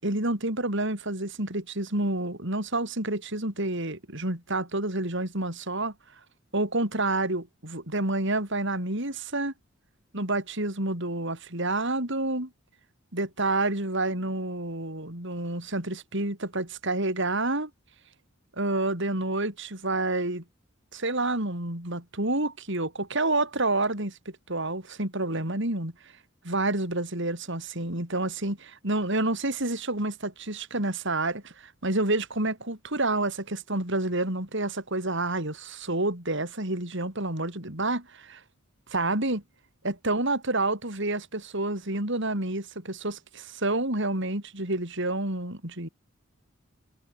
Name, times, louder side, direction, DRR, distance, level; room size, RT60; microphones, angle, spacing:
voice 1, 0.0-5.9 6.5-9.5 10.1-12.5 13.1-17.7 18.6-20.4 20.9-25.9 26.4-38.3 38.9-39.4 39.8-45.9, right 2 dB, 65° right, 6.9 m, -29 dB
head